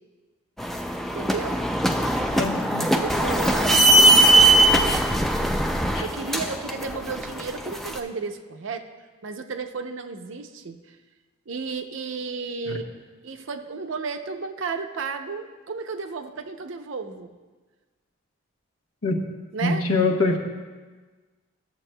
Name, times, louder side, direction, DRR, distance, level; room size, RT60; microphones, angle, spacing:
sound 1, 0.6-8.0, right 1 dB, ahead, 0.3 m, -20 dB
voice 1, 1.1-1.6 2.9-5.0 6.0-8.9 9.2-11.0 11.5-12.9 13.2-17.3 19.5-19.8, right 4 dB, 65° right, 6 dB, 0.6 m, -33 dB
voice 2, 2.3-2.9 5.9-6.1 12.7-12.8 19.0-19.2 19.6-20.4, left 3 dB, 80° left, 4 dB, 1.0 m, -24 dB
14.0 x 7.3 x 2.2 m, 1.4 s
head